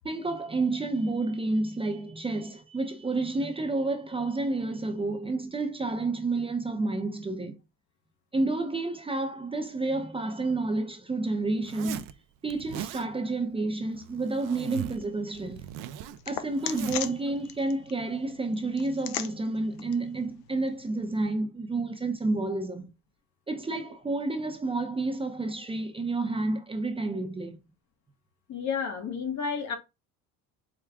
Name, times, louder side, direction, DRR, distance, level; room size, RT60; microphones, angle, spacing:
voice 1, 0.0-7.6 8.3-12.0 12.4-15.7 16.3-22.9 23.5-27.6, right 2 dB, 15° right, 0.6 m, -30 dB
Zipper (clothing), 11.6-12.1 12.5-13.1 13.9-15.1 15.3-17.1, right 11 dB, 70° right, 0.5 m, -39 dB
sound 1, 14.4-21.2, left 11 dB, 85° left, 0.6 m, -41 dB
voice 2, 28.5-29.8, left 6 dB, 55° left, 1.2 m, -31 dB
4.7 x 2.2 x 3.5 m
cardioid pair, 105°, 34 cm